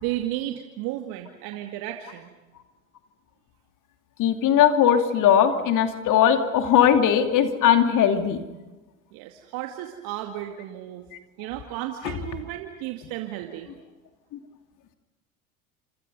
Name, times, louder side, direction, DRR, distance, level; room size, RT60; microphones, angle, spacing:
voice 1, 0.0-2.3 9.1-11.0 11.4-13.7, right 13 dB, 55° right, 4 dB, 2.3 m, -33 dB
voice 2, 4.2-8.4, left 9 dB, 45° left, 7 dB, 2.6 m, -19 dB
28.0 x 27.0 x 5.4 m, 1.1 s
figure-of-eight pair, 75°, 42 cm